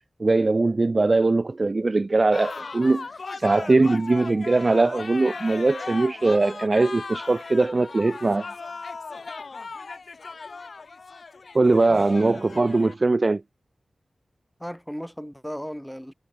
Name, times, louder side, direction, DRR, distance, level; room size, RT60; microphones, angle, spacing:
voice 1, 0.2-3.1 3.3-8.5 11.5-13.4, right 3 dB, 45° right, 0.3 m, -21 dB
sound 1, 2.3-13.0, left 4 dB, 65° left, 1.0 m, -37 dB
voice 2, 11.9-12.6 14.6-16.1, equal, ahead, 3.4 m, -36 dB
cardioid pair, 45°, 0 cm